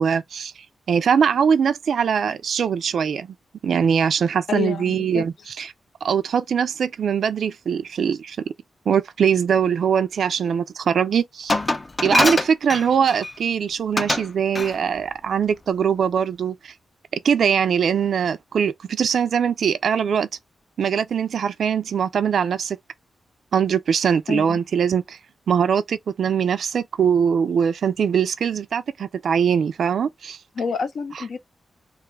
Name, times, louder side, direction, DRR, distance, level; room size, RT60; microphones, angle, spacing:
voice 1, 0.0-3.3 3.6-5.7 6.0-8.4 8.9-11.6 12.0-16.7 17.2-20.3 20.8-22.8 23.5-25.2 25.5-30.4, right 7 dB, 80° right, 0.3 m, -22 dB
voice 2, 4.5-5.3 24.3-24.6 30.5-31.4, left 6 dB, 70° left, 0.8 m, -28 dB
Glass, 11.5-13.3 14.0-14.3 14.5-14.8, left 2 dB, 30° left, 0.5 m, -23 dB
2.9 x 2.3 x 3.2 m
cardioid pair, 95°, 0 cm